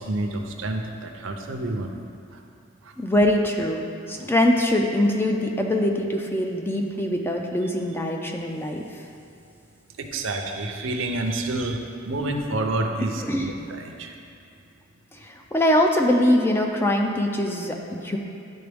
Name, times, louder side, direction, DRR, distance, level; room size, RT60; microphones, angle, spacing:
voice 1, 0.0-2.0 2.3-2.4 2.8-2.9 10.0-14.1, right 2 dB, 70° right, 4 dB, 0.6 m, -29 dB
voice 2, 3.0-8.9 13.2-13.5 15.1-18.2, left 1 dB, 10° left, 1 dB, 0.4 m, -23 dB
10.5 x 3.8 x 3.4 m, 2.6 s
head